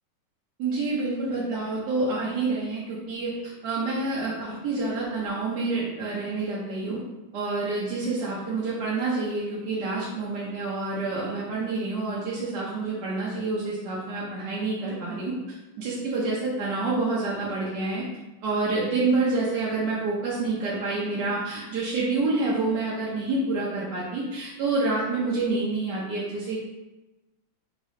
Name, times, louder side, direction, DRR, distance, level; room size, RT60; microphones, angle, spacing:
voice 1, 0.6-7.0 7.3-15.3 15.8-18.0 18.4-26.6, right 3 dB, 65° right, -6 dB, 1.2 m, -28 dB
3.7 x 3.3 x 4.1 m, 1.1 s
omnidirectional pair, 2.3 m